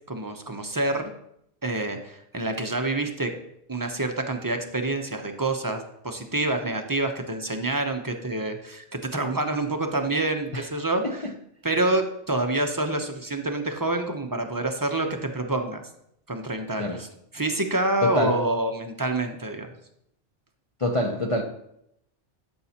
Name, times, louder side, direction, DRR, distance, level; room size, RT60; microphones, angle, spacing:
voice 1, 0.1-1.1 1.6-3.3 3.7-11.2 11.6-15.8 16.3-17.1 17.3-19.7, right 2 dB, 20° right, 4 dB, 0.6 m, -27 dB
voice 2, 18.0-18.4 20.8-21.4, left 1 dB, 35° left, 0 dB, 0.6 m, -26 dB
12.0 x 6.6 x 2.9 m, 0.77 s
omnidirectional pair, 1.2 m